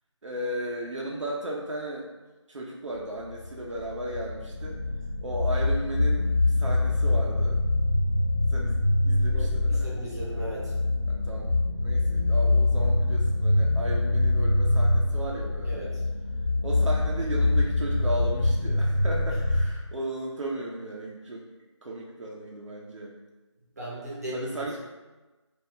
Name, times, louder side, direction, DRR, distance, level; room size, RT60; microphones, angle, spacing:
voice 1, 0.2-2.1 2.5-4.8 5.2-7.6 8.5-10.2 11.1-11.5 11.8-15.9 16.6-21.5 21.8-23.1 24.3-24.8, right 1 dB, 75° right, -2 dB, 0.5 m, -35 dB
sound 1, 3.3-19.6, left 2 dB, 55° left, 0.5 m, -24 dB
voice 2, 9.3-10.7 15.6-16.0 19.3-19.4 23.8-24.7, right 1 dB, 35° right, -7 dB, 0.8 m, -37 dB
2.3 x 2.1 x 3.6 m, 1.2 s
figure-of-eight pair, 170°, 16 cm